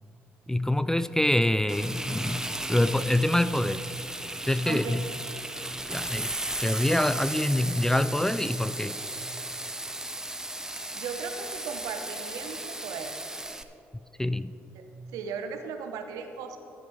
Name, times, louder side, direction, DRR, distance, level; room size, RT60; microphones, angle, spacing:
voice 1, 0.5-3.8 4.5-5.0 5.9-6.3 6.6-9.0 14.2-14.5, left 1 dB, 10° left, 14 dB, 0.3 m, -25 dB
Frying (food), 1.7-13.6, right 1 dB, 10° right, 0.8 m, -35 dB
voice 2, 4.6-5.0 10.9-13.1 14.7-14.9 15.1-16.6, right 6 dB, 70° right, 7 dB, 0.9 m, -37 dB
15.0 x 9.2 x 3.5 m, 2.9 s
hypercardioid pair, 50°, 6 cm